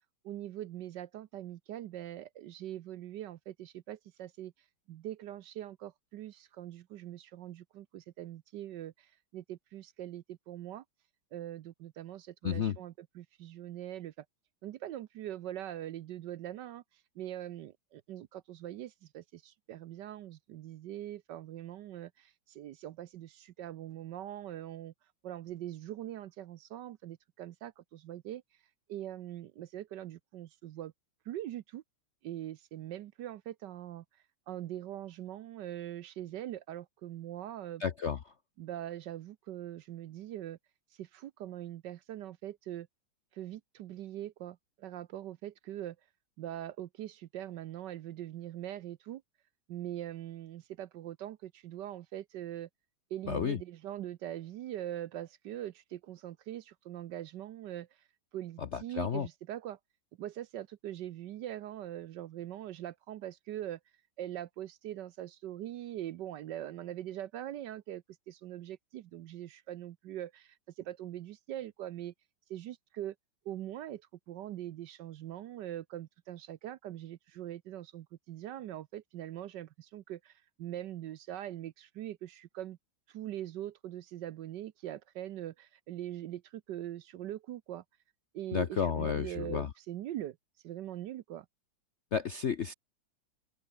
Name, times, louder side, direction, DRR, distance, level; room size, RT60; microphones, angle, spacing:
voice 1, 0.2-4.5 4.9-10.8 11.3-14.2 14.6-16.8 17.2-24.9 25.2-28.4 28.9-30.9 31.3-31.8 32.2-34.0 34.5-37.8 38.6-40.6 41.0-42.9 43.3-46.0 46.4-49.2 49.7-52.7 53.1-57.9 58.3-59.8 60.2-63.8 64.2-72.1 72.5-73.1 73.4-74.0 74.3-82.8 83.1-87.8 88.3-90.4 90.6-91.5, right 12 dB, 70° right, 1.2 m, -42 dB
voice 2, 12.4-12.8 37.8-38.2 53.3-53.6 58.6-59.3 88.5-89.7 92.1-92.7, left 7 dB, 55° left, 0.7 m, -32 dB
open air
omnidirectional pair, 2.2 m